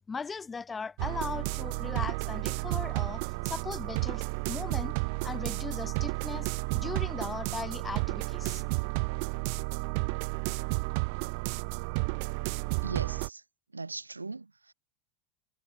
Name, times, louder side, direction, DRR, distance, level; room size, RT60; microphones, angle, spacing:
voice 1, 0.1-4.9 5.2-8.6, left 5 dB, 20° left, 4.8 m, -39 dB
sound 1, 1.0-13.3, right 33 dB, 55° right, 0.4 m, -32 dB
voice 2, 12.8-13.4 13.7-14.7, right 3 dB, 85° right, 4.0 m, -40 dB
figure-of-eight pair, 80°, 0 cm